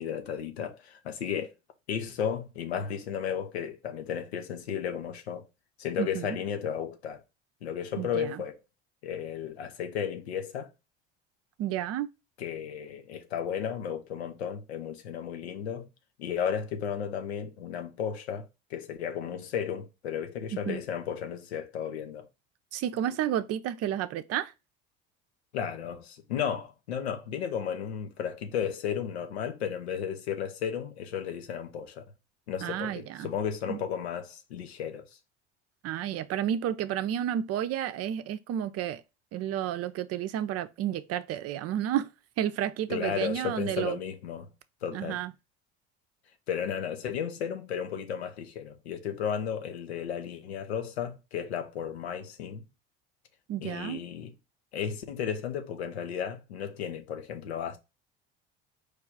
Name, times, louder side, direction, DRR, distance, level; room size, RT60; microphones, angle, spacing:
voice 1, 0.0-1.5 1.9-5.5 5.8-7.2 7.6-8.6 9.0-10.7 12.4-15.9 16.2-22.3 25.5-32.0 32.5-35.0 42.9-44.5 44.8-45.2 46.5-52.6 53.6-54.3 54.7-57.8, left 8 dB, 85° left, 0.8 m, -34 dB
voice 2, 6.0-6.4 8.0-8.4 11.6-12.1 20.7-20.8 22.7-24.5 32.6-33.3 33.7-33.8 35.8-39.0 39.3-42.1 42.4-44.0 44.9-45.3 53.5-54.0, right 11 dB, 50° right, 0.6 m, -31 dB
4.8 x 2.4 x 4.6 m
hypercardioid pair, 65°, 31 cm